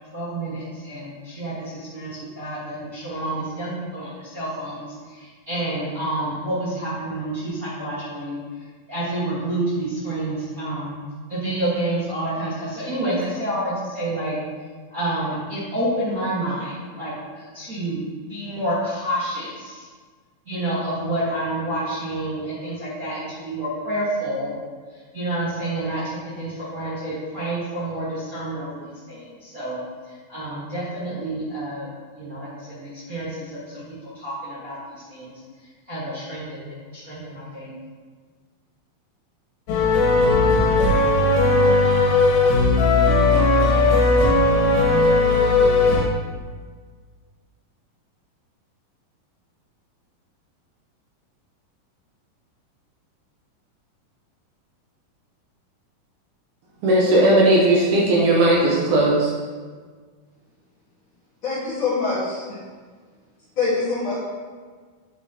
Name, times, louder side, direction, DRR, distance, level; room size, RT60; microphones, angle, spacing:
voice 1, 0.1-4.9 5.1-8.4 8.9-10.9 11.3-14.4 14.9-18.0 18.3-19.9 20.4-24.5 25.1-29.8 30.3-31.9 32.1-35.3 35.9-37.7, right 1 dB, 45° right, -11 dB, 1.1 m, -29 dB
sound 1, 39.7-46.1, left 2 dB, 90° left, 2.9 m, -17 dB
voice 2, 56.8-59.3, right 1 dB, 70° right, -3 dB, 2.1 m, -17 dB
voice 3, 61.4-62.5 63.6-64.1, left 4 dB, 45° left, -9 dB, 1.7 m, -24 dB
8.0 x 6.1 x 2.8 m, 1.5 s
omnidirectional pair, 4.1 m